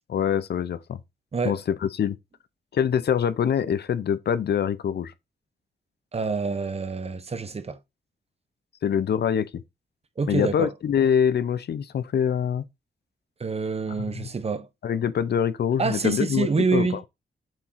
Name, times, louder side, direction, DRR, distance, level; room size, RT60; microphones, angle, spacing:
voice 1, 0.1-1.0 1.4-2.2 2.7-5.1 8.8-9.6 10.3-12.6 14.0-14.3 14.8-16.9, left 8 dB, 70° left, 0.7 m, -24 dB
voice 2, 6.1-7.8 10.2-10.7 13.4-14.7 15.8-17.1, right 4 dB, 35° right, 0.9 m, -26 dB
7.5 x 3.7 x 4.5 m
wide cardioid pair, 115°, 18 cm